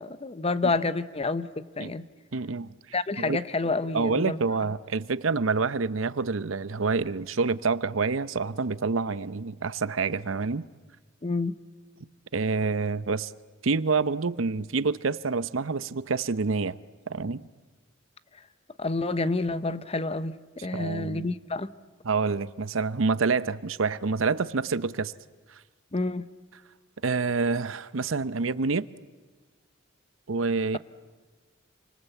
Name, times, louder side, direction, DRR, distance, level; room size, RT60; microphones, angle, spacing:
voice 1, 0.0-2.0 2.9-4.4 11.2-11.5 18.8-20.3 20.6-21.7 25.9-26.3, left 3 dB, 30° left, 0.8 m, -28 dB
voice 2, 2.3-2.7 3.2-3.4 3.9-10.7 12.3-13.3 13.6-16.8 17.1-17.5 20.7-21.3 22.0-25.1 27.0-28.9 30.3-30.8, right 4 dB, 85° right, 0.7 m, -27 dB
28.0 x 25.0 x 8.2 m
head